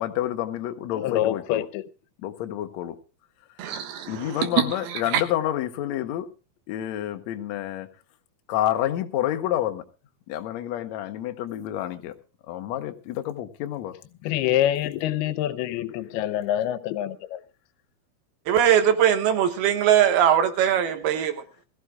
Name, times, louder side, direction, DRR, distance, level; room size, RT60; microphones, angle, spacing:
voice 1, 0.0-1.7 2.2-3.0 4.1-6.3 6.7-7.9 8.5-9.8 10.3-12.1 12.5-14.0, left 12 dB, 70° left, 1.8 m, -29 dB
voice 2, 0.9-1.8 14.2-17.4, left 12 dB, 85° left, 2.7 m, -26 dB
voice 3, 3.6-4.5 5.1-5.2 18.5-21.4, right 9 dB, 85° right, 3.3 m, -21 dB
21.5 x 14.5 x 2.3 m
omnidirectional pair, 4.4 m